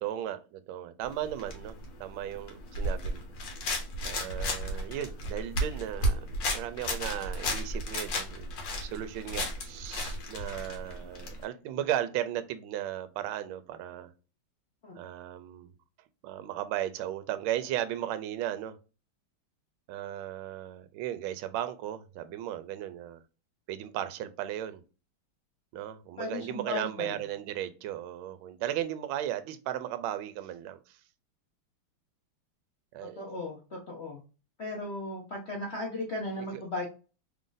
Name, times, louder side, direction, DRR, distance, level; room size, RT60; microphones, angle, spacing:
voice 1, 0.0-1.7 2.0-3.2 4.0-8.5 8.8-14.1 14.9-15.7 16.2-18.8 19.9-23.2 23.7-24.8 25.7-31.0 32.9-33.2 36.4-36.6, right 12 dB, 75° right, 1.3 m, -36 dB
sound 1, 1.0-11.4, equal, 65° left, 1.5 m, -34 dB
voice 2, 26.2-27.2 33.2-34.2 34.6-36.9, left 2 dB, 80° left, 0.6 m, -36 dB
3.6 x 2.4 x 3.8 m
omnidirectional pair, 2.4 m